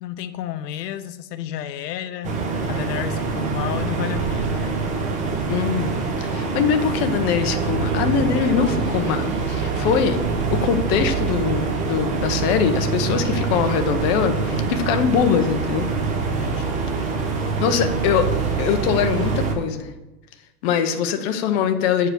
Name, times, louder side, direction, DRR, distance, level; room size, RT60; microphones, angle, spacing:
voice 1, 0.0-2.4 2.7-4.9 16.3-16.8, left 11 dB, 85° left, 12 dB, 0.6 m, -31 dB
sound 1, 2.2-19.5, right 5 dB, 15° right, 0.6 m, -25 dB
voice 2, 5.5-10.2 10.5-15.9 17.6-18.3 18.6-19.9 20.6-22.1, left 7 dB, 40° left, 7 dB, 0.8 m, -22 dB
sound 2, 6.5-12.4, right 3 dB, 80° right, 2.2 m, -34 dB
7.8 x 4.8 x 6.2 m, 1.0 s
supercardioid pair, 150°, 48 cm